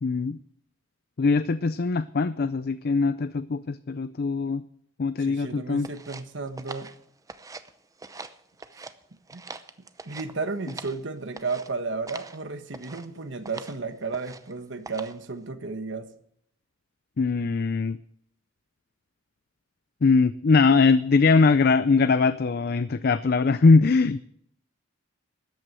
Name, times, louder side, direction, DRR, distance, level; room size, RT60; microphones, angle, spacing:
voice 1, 0.0-0.4 1.2-4.6 5.0-5.9 17.2-18.0 20.0-24.2, left 4 dB, 50° left, 14 dB, 0.5 m, -21 dB
voice 2, 5.2-6.9 8.7-8.9 9.3-9.4 10.0-16.1, right 4 dB, 60° right, 9 dB, 1.3 m, -33 dB
sound 1, 5.8-7.7 8.0-8.9 9.3-11.0 11.3-11.7 12.1-12.4 12.7-13.1 13.4-13.8 14.1-14.5 14.8-15.3, right 3 dB, 15° right, 0.7 m, -42 dB
13.5 x 9.6 x 7.7 m, 0.69 s
head